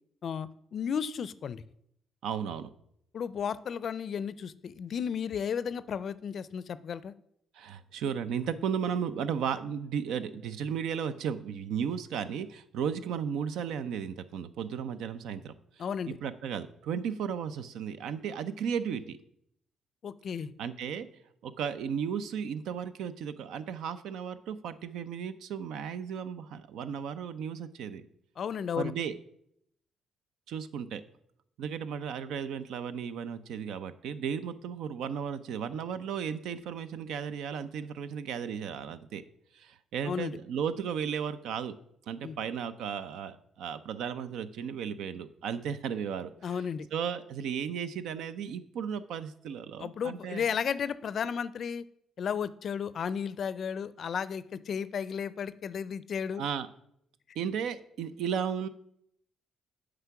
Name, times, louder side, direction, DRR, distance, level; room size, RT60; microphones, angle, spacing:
voice 1, 0.2-1.6 3.1-7.1 15.8-16.2 20.0-20.5 28.4-28.9 40.1-40.4 42.2-42.4 46.4-46.9 49.8-51.8 52.2-56.4, left 7 dB, 55° left, 17 dB, 0.4 m, -33 dB
voice 2, 2.2-2.7 7.5-19.2 20.6-21.1 21.4-28.0 28.8-29.1 30.5-31.0 31.6-39.2 39.5-41.7 42.1-46.6 46.9-50.4 56.4-56.7 57.4-58.7, right 7 dB, 80° right, 12 dB, 0.5 m, -35 dB
8.0 x 5.0 x 5.8 m, 0.73 s
cardioid pair, 90°, 0 cm